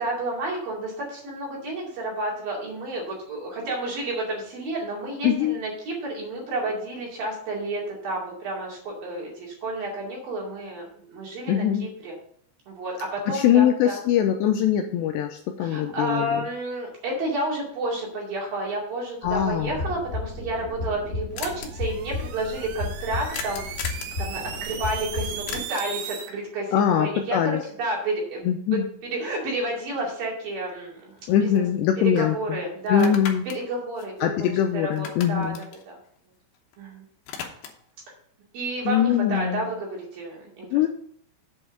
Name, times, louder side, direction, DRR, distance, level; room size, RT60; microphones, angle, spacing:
voice 1, 0.0-12.1 12.7-14.0 15.6-23.8 24.2-28.5 29.0-31.7 32.0-33.1 33.5-34.5 34.7-35.5 35.9-36.0 36.8-37.1 38.5-40.8, right 2 dB, 55° right, -3 dB, 3.9 m, -31 dB
voice 2, 5.2-5.6 11.5-11.9 13.3-16.4 19.2-19.8 26.7-27.6 28.5-28.9 31.3-32.6 32.9-33.5 34.2-35.6 38.9-39.7 40.7-40.9, left 10 dB, 85° left, 5 dB, 2.5 m, -22 dB
sound 1, 19.2-25.6, left 3 dB, 25° left, 3.1 m, -34 dB
sound 2, 21.4-21.7 23.3-24.2 25.5-26.0 30.2-30.3 30.7-31.8 32.2-32.3 32.9-34.6 34.9-36.8 37.0-37.9, left 7 dB, 70° left, 2.4 m, -37 dB
sound 3, 21.5-26.3, right 8 dB, 90° right, 2.1 m, -37 dB
7.9 x 5.5 x 6.1 m, 0.62 s
omnidirectional pair, 5.5 m